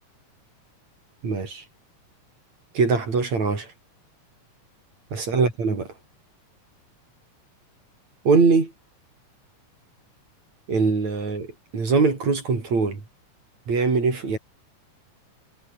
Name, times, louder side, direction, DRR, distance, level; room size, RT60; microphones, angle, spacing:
voice 1, 1.2-1.6 2.7-3.7 5.1-5.9 8.2-8.7 10.7-13.0 13.7-14.4, right 4 dB, 55° right, 6.2 m, -22 dB
omnidirectional pair, 3.8 m